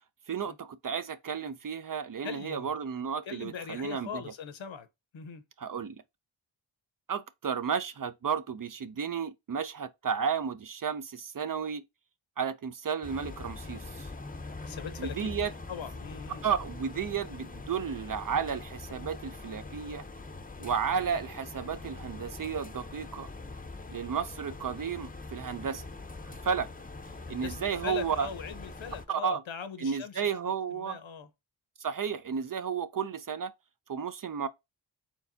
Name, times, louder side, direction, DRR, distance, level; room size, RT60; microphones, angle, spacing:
voice 1, 0.3-4.2 5.6-6.0 7.1-11.8 12.4-14.1 15.0-15.5 16.4-20.0 20.6-23.3 23.9-25.8 26.3-26.7 27.3-28.3 29.1-29.4 29.8-31.0 31.8-33.5 33.9-34.5, right 6 dB, 45° right, 0.5 m, -33 dB
voice 2, 2.2-2.7 3.3-4.9 5.1-5.4 14.6-15.3 15.7-16.5 27.3-27.6 27.8-31.3, left 7 dB, 65° left, 0.9 m, -40 dB
sound 1, 13.0-29.1, left 3 dB, 15° left, 0.7 m, -43 dB
4.6 x 3.4 x 2.6 m
cardioid pair, 50°, 49 cm